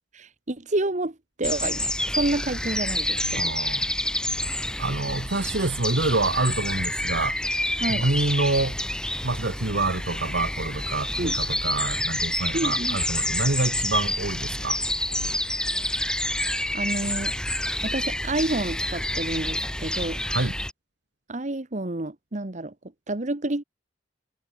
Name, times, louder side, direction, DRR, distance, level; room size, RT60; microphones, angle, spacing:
voice 1, 0.1-3.5 7.8-8.1 11.2-11.4 12.5-13.0 15.7-16.5 16.7-17.3 17.8-20.2 21.3-22.7 23.1-23.6, right 2 dB, 45° right, 1.3 m, -29 dB
sound 1, 1.4-20.7, left 1 dB, 5° left, 2.4 m, -28 dB
voice 2, 3.3-3.9 4.8-7.4 7.9-8.8 9.2-14.8 20.3-20.5, right 2 dB, 80° right, 1.8 m, -27 dB
head